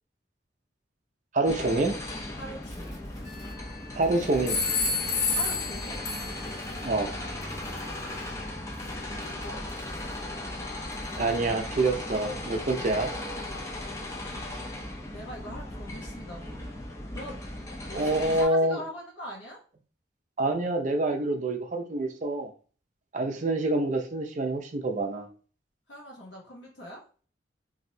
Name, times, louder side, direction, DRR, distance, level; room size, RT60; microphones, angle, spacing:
voice 1, 1.3-2.0 3.9-4.6 6.8-7.1 11.2-13.1 17.9-18.8 20.4-22.5 23.1-25.3, right 2 dB, 40° right, 5 dB, 0.5 m, -26 dB
sound 1, 1.4-18.5, left 1 dB, 15° left, 0.5 m, -37 dB
sound 2, 2.3-11.7, right 1 dB, ahead, 0.9 m, -50 dB
voice 2, 2.4-3.0 5.3-6.0 9.2-9.6 15.1-16.6 17.1-17.4 17.8-19.6 25.9-27.0, left 1 dB, 80° left, -2 dB, 1.0 m, -42 dB
sound 3, 3.3-3.9 4.5-6.6, left 4 dB, 60° left, 0.7 m, -29 dB
3.1 x 2.7 x 2.6 m, 0.40 s
head